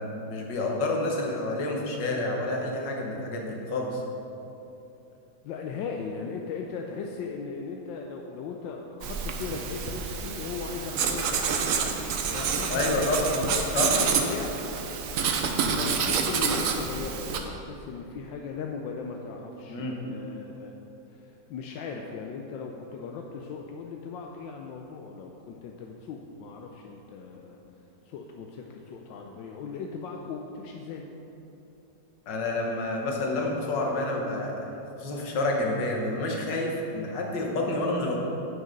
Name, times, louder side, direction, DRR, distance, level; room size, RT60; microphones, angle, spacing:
voice 1, 0.0-4.0 12.7-13.2 13.7-13.9 19.7-20.0 32.3-34.7 35.0-38.2, left 2 dB, 70° left, 0 dB, 1.8 m, -29 dB
voice 2, 5.4-11.7 12.3-14.7 15.7-20.7 21.1-27.6 28.1-31.1, left 5 dB, 85° left, 1 dB, 1.3 m, -38 dB
Writing, 9.0-17.4, right 6 dB, 65° right, 0.8 m, -28 dB
8.0 x 6.2 x 5.3 m, 2.9 s
omnidirectional pair, 2.0 m